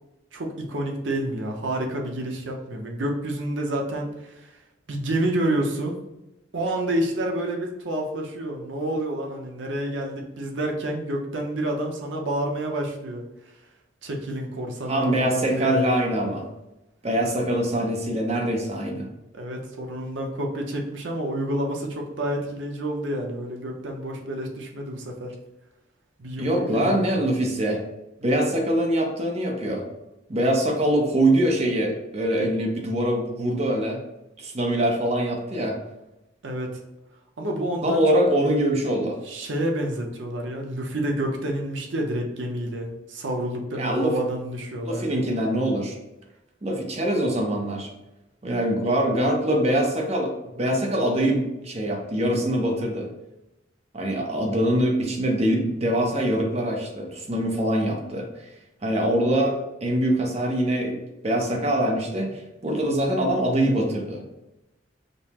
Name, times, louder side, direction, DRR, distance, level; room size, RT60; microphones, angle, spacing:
voice 1, 0.3-4.6 4.9-6.0 6.5-13.2 14.0-15.9 19.3-25.3 26.2-27.2 36.4-36.8 37.4-38.2 39.2-45.2, right 1 dB, 85° right, 1 dB, 0.7 m, -29 dB
voice 2, 14.9-16.4 17.0-19.1 26.4-27.8 28.2-29.8 30.3-34.0 34.4-35.8 37.8-39.2 43.8-44.1 44.8-46.0 46.6-47.9 48.4-53.1 53.9-58.3 58.8-61.0 61.2-64.2, right 1 dB, 35° right, 1 dB, 0.7 m, -23 dB
5.3 x 2.0 x 2.9 m, 0.94 s
head